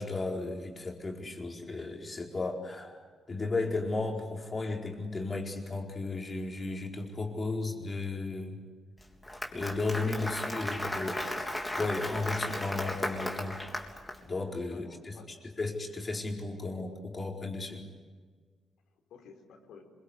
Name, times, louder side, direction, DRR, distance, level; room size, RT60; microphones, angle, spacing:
voice 1, 0.0-8.6 9.5-11.2 11.8-13.6 14.2-17.9, left 3 dB, 25° left, 0 dB, 4.5 m, -34 dB
Applause, 9.0-14.2, left 1 dB, 10° left, 3.5 m, -35 dB
voice 2, 10.5-11.9 14.7-15.5 19.1-19.9, left 5 dB, 90° left, 3 dB, 5.0 m, -52 dB
26.5 x 23.5 x 8.1 m, 1.5 s
cardioid pair, 130°, 0 cm